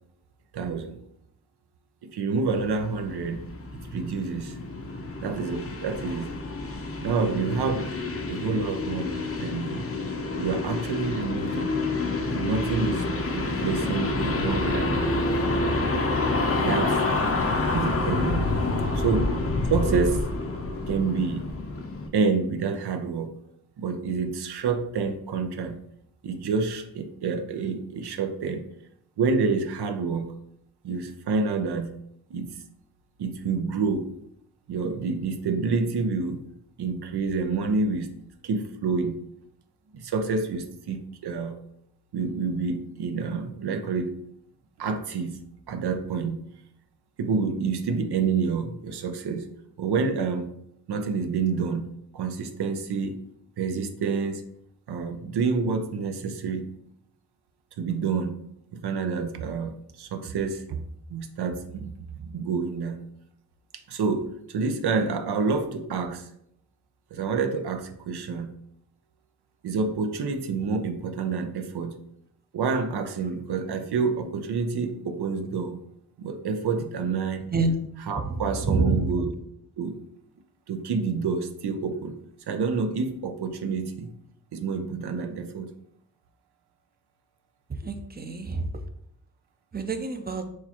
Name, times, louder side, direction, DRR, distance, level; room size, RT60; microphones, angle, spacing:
voice 1, 0.5-1.0 2.0-3.4 3.7-4.6 5.2-6.3 7.0-7.9 8.3-9.8 10.4-11.7 12.3-13.1 13.3-15.3 16.6-17.0 17.7-18.5 18.9-19.3 19.7-20.3 20.9-21.5 22.1-23.3 23.8-25.8 26.2-28.6 29.2-30.3 30.8-31.9 32.3-32.5 33.2-34.1 34.7-36.4 36.8-38.1 38.4-39.2 39.9-41.6 42.1-44.1 44.8-45.4 45.7-46.4 47.2-49.5 49.8-50.5 50.9-51.9 52.1-53.2 53.6-54.4 54.9-56.7 57.8-58.3 58.7-60.8 61.1-63.0 63.9-66.3 67.1-68.5 69.6-72.0 72.5-75.8 76.2-77.4 78.0-79.3 79.8-80.0 80.7-82.1 82.5-84.1 84.5-85.7, right 4 dB, 90° right, 6 dB, 0.6 m, -28 dB
sound 1, 2.5-22.1, left 2 dB, 35° left, 0.6 m, -28 dB
voice 2, 78.6-79.0 87.8-88.7 89.7-90.4, right 3 dB, 25° right, 6 dB, 0.4 m, -26 dB
6.2 x 2.3 x 2.9 m, 0.73 s
wide cardioid pair, 120°, 38 cm